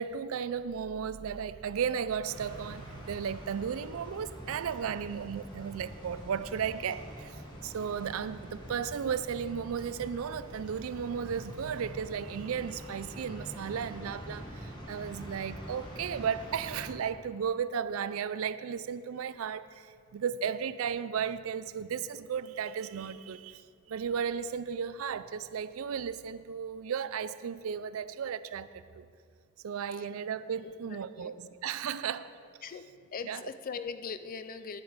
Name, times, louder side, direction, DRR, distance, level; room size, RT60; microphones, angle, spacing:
voice 1, 0.0-7.4 7.6-23.6 23.9-29.1 29.6-32.3 33.3-33.4, right 7 dB, 75° right, 0.4 m, -35 dB
sound 1, 2.3-16.9, equal, 20° left, 1.5 m, -45 dB
voice 2, 30.6-31.5 32.6-34.8, left 5 dB, 40° left, 0.4 m, -41 dB
9.8 x 8.1 x 4.9 m
head